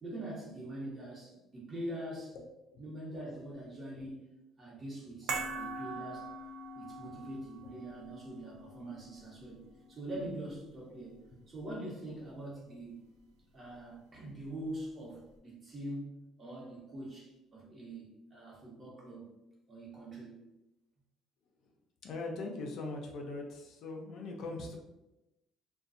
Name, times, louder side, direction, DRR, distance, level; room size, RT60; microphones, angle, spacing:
voice 1, 0.0-2.4 2.8-4.2 4.6-6.3 6.7-9.6 9.9-11.2 11.5-13.0 13.5-19.3 19.7-20.4, right 1 dB, 30° right, -4 dB, 0.9 m, -43 dB
sound 1, 5.3-11.7 12.0-12.1, right 3 dB, 80° right, 0.4 m, -43 dB
voice 2, 22.0-24.8, left 3 dB, 65° left, 1 dB, 0.5 m, -40 dB
2.5 x 2.1 x 2.5 m, 0.95 s
cardioid pair, 110°, 0 cm